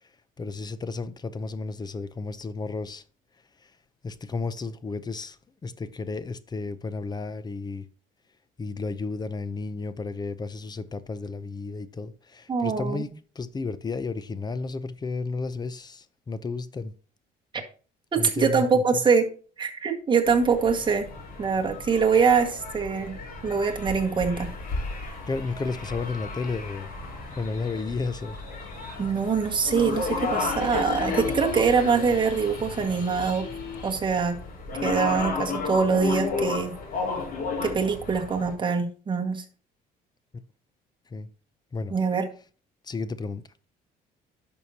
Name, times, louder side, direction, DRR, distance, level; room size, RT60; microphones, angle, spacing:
voice 1, 0.4-3.0 3.6-3.7 4.0-7.9 8.6-13.1 13.3-16.9 18.2-18.8 25.3-26.9 27.4-28.4 41.1-41.3 41.7-41.9 42.8-43.4, left 4 dB, 25° left, 0.7 m, -32 dB
voice 2, 12.5-13.0 18.1-19.3 19.6-21.1 21.4-23.2 23.4-24.5 29.0-33.5 33.8-34.4 34.8-36.7 37.6-39.4 41.9-42.3, right 5 dB, 30° right, 1.9 m, -24 dB
sound 1, 20.2-38.5, left 4 dB, 60° left, 4.3 m, -33 dB
sound 2, 30.3-34.0, left 5 dB, 85° left, 3.8 m, -38 dB
11.0 x 6.4 x 2.9 m
cardioid pair, 110°, 17 cm